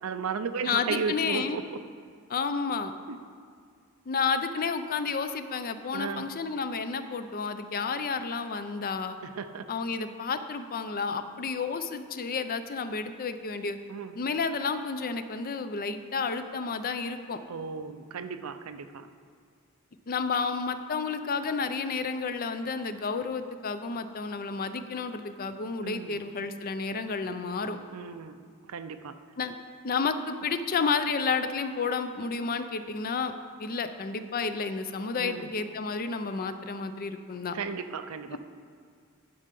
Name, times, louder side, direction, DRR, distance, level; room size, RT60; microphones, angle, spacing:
voice 1, 0.0-1.8 3.1-3.2 5.9-6.3 9.2-9.7 13.9-14.2 17.5-19.1 25.8-26.2 27.9-28.4 28.7-29.2 35.2-35.5 37.5-38.4, right 5 dB, 85° right, 10 dB, 0.5 m, -35 dB
voice 2, 0.6-1.6 2.3-2.9 4.1-9.2 9.7-13.8 14.2-17.4 20.1-27.8 29.4-29.6 29.8-33.3 33.6-37.6 38.3-38.4, left 5 dB, 45° left, 10 dB, 0.5 m, -31 dB
10.5 x 5.6 x 5.3 m, 2.2 s
head